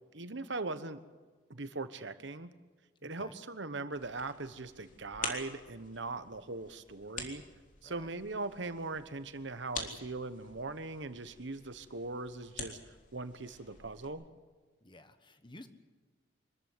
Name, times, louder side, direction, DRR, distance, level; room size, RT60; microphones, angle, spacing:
voice 1, 0.1-1.0 1.5-2.5 3.0-7.4 7.8-14.2, right 3 dB, 65° right, 11 dB, 1.2 m, -40 dB
voice 2, 3.0-3.4 7.8-8.1 14.8-15.7, left 1 dB, 25° left, 9 dB, 1.3 m, -53 dB
sound 1, 3.9-14.1, left 4 dB, 40° left, 3.4 m, -47 dB
25.0 x 14.0 x 9.6 m, 1.3 s
head